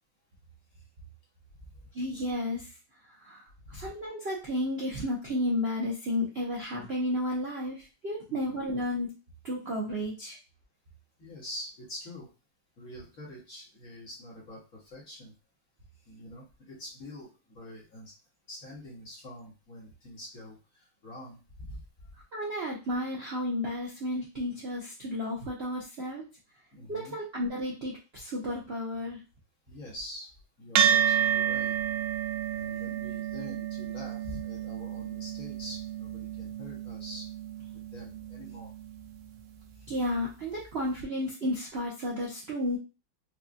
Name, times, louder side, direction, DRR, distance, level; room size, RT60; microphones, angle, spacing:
voice 1, 1.9-2.7 3.2-9.1 9.4-10.4 22.3-26.3 26.9-29.2 39.9-42.8, left 1 dB, 50° right, -4 dB, 0.7 m, -32 dB
voice 2, 11.2-12.3 12.8-15.3 16.1-18.1 18.5-21.8 26.7-27.2 29.7-30.3 30.6-31.7 32.5-37.3 37.7-38.7, left 1 dB, 50° left, -5 dB, 1.8 m, -45 dB
sound 1, 30.8-39.4, right 9 dB, 85° right, 1.3 m, -30 dB
4.8 x 2.3 x 2.6 m, 0.30 s
omnidirectional pair, 2.0 m